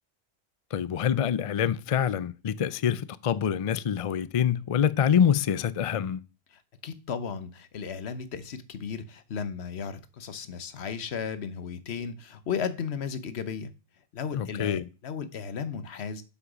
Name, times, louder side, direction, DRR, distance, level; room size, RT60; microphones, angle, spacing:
voice 1, 0.7-6.2 14.3-14.8, left 8 dB, 50° left, 0.4 m, -26 dB
voice 2, 6.5-13.7 14.1-16.2, left 6 dB, 75° left, 1.2 m, -35 dB
7.9 x 5.7 x 6.1 m
omnidirectional pair, 1.1 m